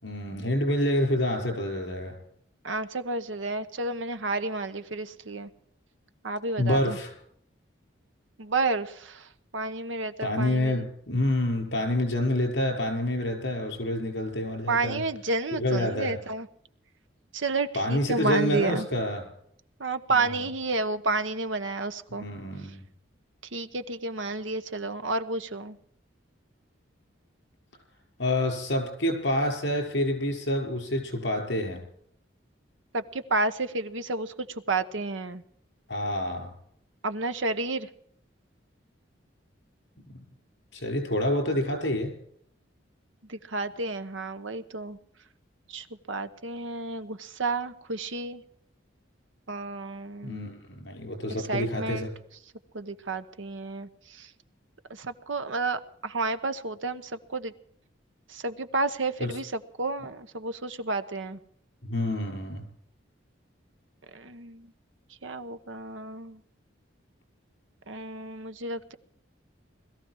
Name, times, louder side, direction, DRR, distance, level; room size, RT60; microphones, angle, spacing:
voice 1, 0.0-2.2 6.6-7.1 10.2-15.0 15.5-16.2 17.7-19.2 20.1-20.4 22.1-22.8 28.2-31.8 35.9-36.5 40.7-42.1 50.2-52.1 59.2-59.4 61.8-62.6, left 1 dB, 65° left, 3 dB, 6.0 m, -28 dB
voice 2, 2.6-5.5 6.2-7.0 8.4-9.3 9.5-10.9 14.7-16.5 17.3-18.9 19.8-22.2 23.5-25.8 32.9-35.4 37.0-37.9 43.3-45.0 45.7-48.4 49.5-50.5 51.5-52.1 52.7-54.3 54.9-57.5 58.3-61.4 64.1-64.7 65.2-66.4 67.9-68.9, right 3 dB, 85° right, 11 dB, 1.2 m, -31 dB
21.0 x 14.5 x 4.8 m, 0.66 s
head